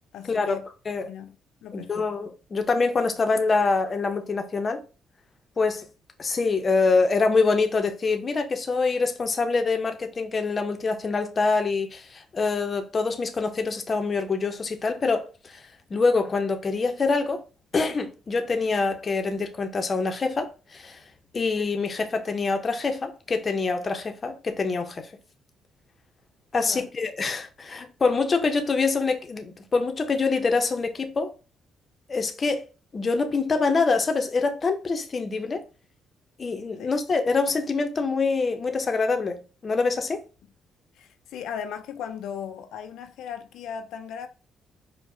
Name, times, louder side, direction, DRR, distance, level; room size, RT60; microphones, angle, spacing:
voice 1, 0.1-0.7 1.1-1.4 1.6-2.1 26.7-26.9 36.8-36.9 40.9-44.3, left 8 dB, 85° left, 0.3 m, -37 dB
voice 2, 1.7-4.8 5.6-5.9 6.2-15.6 15.9-17.4 17.7-21.0 21.3-25.1 26.5-31.3 32.1-32.7 32.9-35.6 36.4-40.2, left 4 dB, 30° left, 0.5 m, -25 dB
4.6 x 2.0 x 2.6 m
cardioid pair, 135°, 0 cm